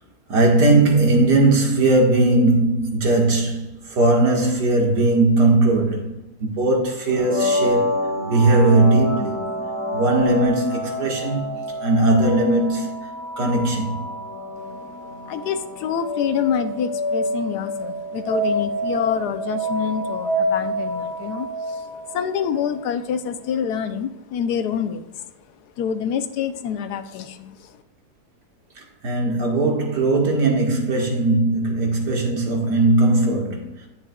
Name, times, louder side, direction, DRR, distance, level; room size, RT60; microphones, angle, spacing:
voice 1, 0.3-8.0 8.3-9.4 9.9-11.5 11.8-13.1 13.4-14.0 28.8-33.9, right 2 dB, 85° right, 2.3 m, -19 dB
sound 1, 7.1-22.7, equal, ahead, 2.2 m, -27 dB
voice 2, 14.7-25.3 25.8-27.8, left 8 dB, 75° left, 1.2 m, -27 dB
10.5 x 8.7 x 2.3 m
omnidirectional pair, 1.8 m